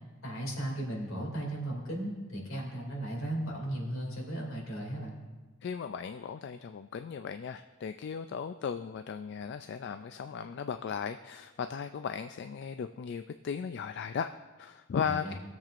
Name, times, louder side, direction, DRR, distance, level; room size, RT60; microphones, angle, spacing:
voice 1, 0.2-5.2 15.0-15.3, right 1 dB, 75° left, -1 dB, 2.5 m, -36 dB
voice 2, 5.6-15.3, left 6 dB, 55° left, 9 dB, 0.3 m, -36 dB
19.5 x 7.4 x 2.5 m, 1.2 s
head